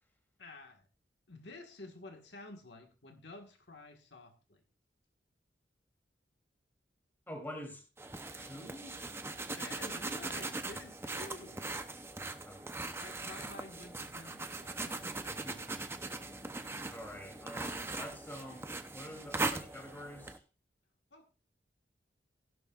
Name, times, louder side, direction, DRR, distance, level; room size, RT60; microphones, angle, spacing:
voice 1, 0.4-0.9 1.3-4.6 9.5-11.6 13.0-15.1 21.1-21.3, left 2 dB, 70° left, 1.7 m, -51 dB
voice 2, 7.3-7.8 8.4-9.0 12.4-12.9 15.3-16.0 16.9-20.4, equal, 10° left, 3.0 m, -47 dB
sound 1, 8.0-20.4, right 3 dB, 15° right, 0.7 m, -40 dB
sound 2, 14.6-19.9, equal, 50° right, 5.1 m, -62 dB
16.0 x 11.5 x 2.4 m
head